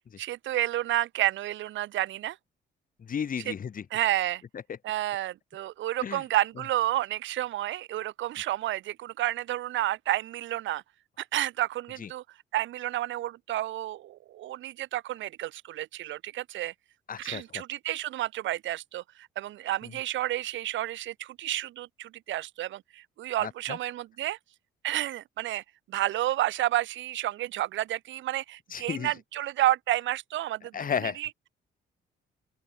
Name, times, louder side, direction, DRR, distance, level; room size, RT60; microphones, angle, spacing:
voice 1, 0.2-2.4 3.9-4.4 4.8-10.8 11.2-12.2 12.5-16.7 17.2-24.4 24.8-25.6 25.9-30.7 31.0-31.3, right 14 dB, 70° right, 0.6 m, -30 dB
voice 2, 3.0-3.8 6.0-6.2 12.0-12.1 17.1-17.4 19.8-19.9 23.4-23.8 28.7-29.1 30.7-31.2, left 7 dB, 45° left, 1.5 m, -33 dB
open air
cardioid pair, 90°, 20 cm